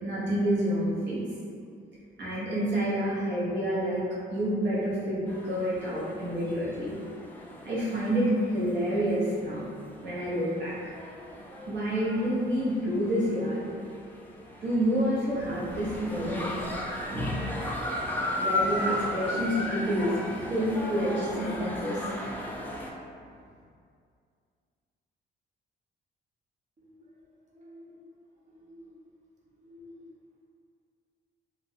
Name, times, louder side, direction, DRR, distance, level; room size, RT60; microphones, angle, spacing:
voice 1, 0.0-1.3 2.2-6.9 7.6-8.2 8.5-9.7 10.0-10.7 11.7-13.7 14.6-16.6 17.1-17.5 18.4-20.1 20.5-22.2, equal, 65° right, -8 dB, 1.1 m, -28 dB
sound 1, 5.3-22.9, left 1 dB, 10° left, 0.4 m, -36 dB
voice 2, 27.5-28.0 28.5-28.9 29.6-30.0, left 1 dB, 40° right, -4 dB, 0.8 m, -51 dB
2.5 x 2.4 x 3.4 m, 2.3 s
cardioid pair, 90°, 20 cm